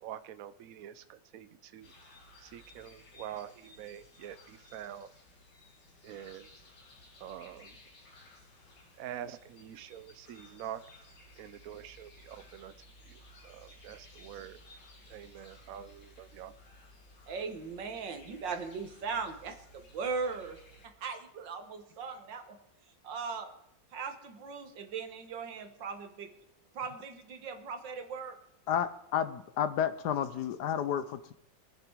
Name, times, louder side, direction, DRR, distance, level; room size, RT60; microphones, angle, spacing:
voice 1, 0.0-1.9 2.4-5.1 6.0-6.5 7.2-7.8 9.0-10.8 11.4-12.7 13.1-14.6 15.1-16.5, right 10 dB, 60° right, 14 dB, 1.0 m, -45 dB
sound 1, 1.8-20.9, left 1 dB, 85° left, 3.0 m, -57 dB
voice 2, 17.3-22.6 23.0-23.5 23.9-26.3 26.7-28.4, right 5 dB, 80° right, 8 dB, 2.0 m, -39 dB
voice 3, 28.7-31.3, left 9 dB, 70° left, 13 dB, 1.3 m, -31 dB
23.5 x 9.1 x 4.6 m, 0.77 s
omnidirectional pair, 1.9 m